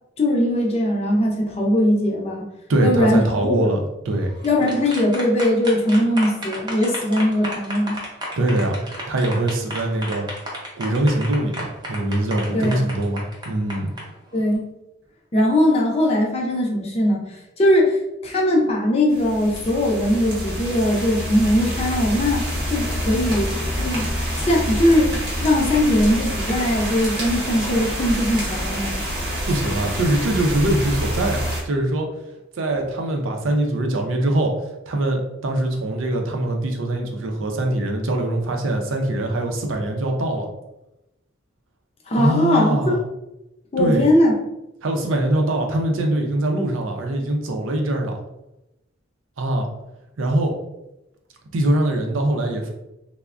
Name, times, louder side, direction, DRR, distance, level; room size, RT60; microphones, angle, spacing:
voice 1, 0.2-2.4 2.8-3.7 4.4-8.0 12.5-12.8 14.3-14.6 15.3-22.4 22.7-23.5 23.8-24.1 24.4-29.0 42.1-42.8 43.7-44.3, left 1 dB, 30° left, -2 dB, 0.5 m, -20 dB
voice 2, 2.7-3.8 4.1-4.3 8.4-8.8 9.1-10.2 10.8-13.9 29.5-32.1 32.6-34.5 34.9-40.5 42.2-43.0 43.8-44.1 44.8-48.2 49.4-49.7 50.2-50.5 51.5-52.7, right 1 dB, 85° right, 3 dB, 0.5 m, -22 dB
sound 1, 4.2-14.0, equal, 20° right, 0.5 m, -32 dB
sound 2, 19.1-31.6, equal, 50° right, 0.8 m, -27 dB
3.3 x 2.1 x 2.4 m, 0.92 s
head